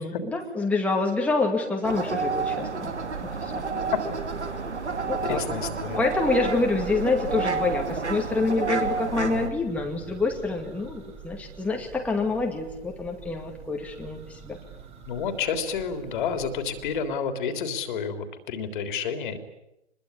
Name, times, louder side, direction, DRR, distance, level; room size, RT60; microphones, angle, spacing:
voice 1, 0.0-2.9 3.4-3.6 5.1-5.6 6.0-14.6, left 3 dB, 5° left, 1 dB, 2.2 m, -27 dB
sound 1, 1.8-9.5, right 4 dB, 80° right, 2.7 m, -30 dB
Church bell, 3.0-17.3, right 8 dB, 20° right, 3.6 m, -45 dB
voice 2, 5.2-6.0 9.2-9.5 15.0-19.4, left 6 dB, 45° left, 8 dB, 3.4 m, -30 dB
25.0 x 22.0 x 9.9 m, 0.86 s
figure-of-eight pair, 120°, 34 cm